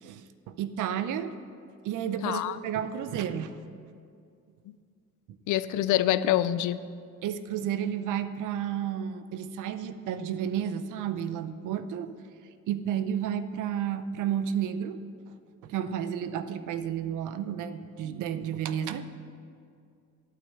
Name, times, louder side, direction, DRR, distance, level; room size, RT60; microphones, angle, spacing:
voice 1, 0.0-1.3 1.8-3.6 5.3-5.4 7.2-12.1 12.7-15.0 15.6-19.0, right 9 dB, 85° right, 12 dB, 0.6 m, -32 dB
voice 2, 2.2-2.6 5.5-6.8, left 13 dB, 80° left, 16 dB, 0.5 m, -25 dB
8.7 x 8.5 x 6.6 m, 2.4 s
cardioid pair, 90°, 30 cm